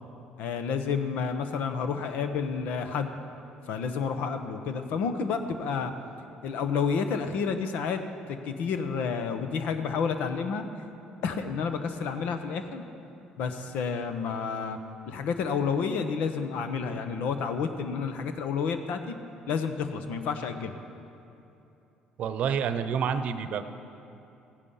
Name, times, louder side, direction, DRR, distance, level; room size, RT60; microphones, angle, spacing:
voice 1, 0.4-3.1 3.7-5.9 6.4-8.0 8.4-10.7 11.2-12.8 13.4-14.8 15.1-19.2 19.5-20.8, left 6 dB, 75° left, 8 dB, 1.0 m, -30 dB
voice 2, 22.2-23.6, right 7 dB, 65° right, 10 dB, 0.7 m, -28 dB
15.5 x 10.0 x 5.7 m, 2.8 s
cardioid pair, 90°, 3 cm